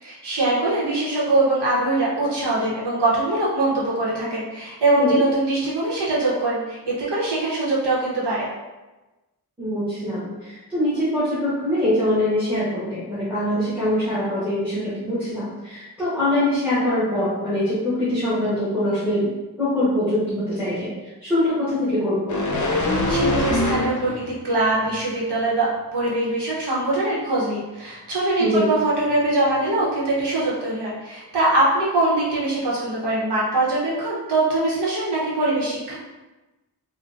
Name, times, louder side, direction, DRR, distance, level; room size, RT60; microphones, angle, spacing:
voice 1, 0.0-8.5 22.8-35.9, right 2 dB, 80° right, -6 dB, 0.9 m, -22 dB
voice 2, 9.6-19.3 19.6-20.9 21.2-22.3 28.4-28.7, left 1 dB, 5° right, -13 dB, 1.0 m, -23 dB
sound 1, 22.3-24.4 24.8-25.0, left 1 dB, 50° left, 0.5 m, -23 dB
3.7 x 2.2 x 2.5 m, 1.1 s
wide cardioid pair, 155°, 40 cm